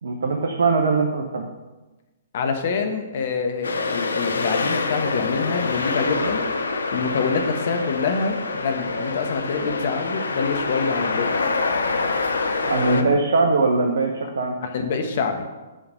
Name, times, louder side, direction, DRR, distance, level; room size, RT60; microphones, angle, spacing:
voice 1, 0.0-1.5 12.6-14.5, right 3 dB, 65° right, 2 dB, 1.0 m, -21 dB
voice 2, 2.3-6.4 6.9-11.4 12.8-13.1 14.6-15.5, left 5 dB, 55° left, 5 dB, 1.4 m, -26 dB
sound 1, 3.6-13.0, left 4 dB, 75° left, 0.8 m, -26 dB
9.0 x 4.9 x 6.5 m, 1.1 s
figure-of-eight pair, 120°, 0 cm